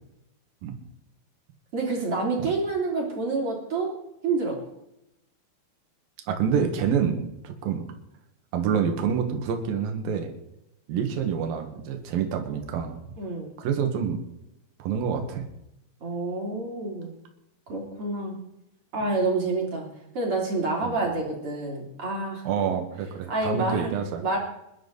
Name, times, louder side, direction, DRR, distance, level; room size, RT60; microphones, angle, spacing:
voice 1, 1.7-3.9 4.2-4.6 13.2-13.5 16.0-17.1 17.7-18.4 18.9-19.8 20.1-22.4 23.3-23.9 24.2-24.4, right 3 dB, 35° right, -1 dB, 4.0 m, -28 dB
voice 2, 6.3-7.9 8.5-10.3 10.9-13.0 13.6-14.2 14.8-15.5 20.8-21.0 22.4-24.2, right 7 dB, 65° right, 4 dB, 3.3 m, -27 dB
22.0 x 11.5 x 4.1 m, 0.85 s
omnidirectional pair, 4.6 m